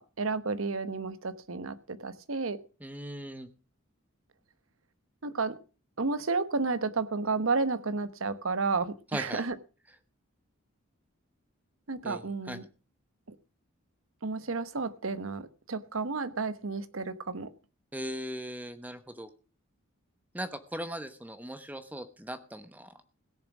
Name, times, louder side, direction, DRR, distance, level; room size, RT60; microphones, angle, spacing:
voice 1, 0.0-2.6 5.2-5.6 6.0-9.6 11.9-12.6 14.2-17.5, right 4 dB, 75° right, 13 dB, 1.0 m, -31 dB
voice 2, 2.8-3.5 9.1-9.4 12.0-12.6 17.9-19.3 20.3-22.9, equal, 10° right, 10 dB, 0.9 m, -39 dB
17.0 x 7.2 x 6.1 m, 0.35 s
head